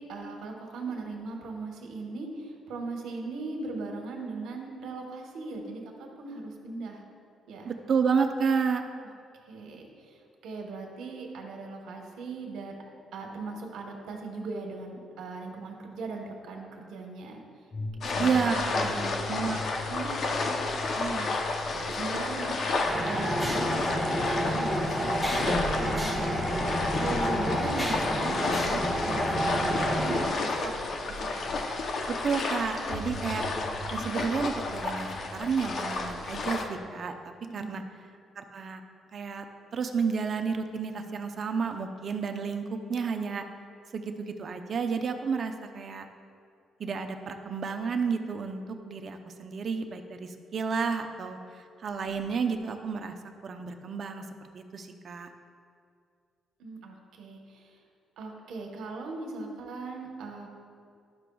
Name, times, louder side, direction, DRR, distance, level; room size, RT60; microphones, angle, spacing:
voice 1, 0.0-7.0 7.5-7.7 9.5-12.8 13.1-17.4 18.1-19.2 19.8-20.1 20.9-21.3 21.7-22.5 22.9-25.1 25.7-26.3 27.0-30.7 31.2-31.5 37.5-37.8 56.6-57.8 58.2-60.5, right 3 dB, 80° right, 1 dB, 1.1 m, -39 dB
voice 2, 7.6-8.8 18.2-18.9 19.3-19.7 32.1-33.5 33.9-37.8 38.4-38.8 39.1-39.4 39.7-43.4 43.9-46.1 46.8-51.4 51.8-53.1 53.4-54.2 54.5-55.3, right 5 dB, 50° right, 6 dB, 0.6 m, -31 dB
sound 1, 17.7-27.0 28.0-28.1 32.9-36.8, left 2 dB, 35° left, 1.0 m, -43 dB
sound 2, 18.0-36.6, left 3 dB, 55° left, 0.7 m, -31 dB
sound 3, 22.9-30.3, equal, 5° left, 1.3 m, -29 dB
11.5 x 5.9 x 2.3 m, 2.3 s
cardioid pair, 90°, 0 cm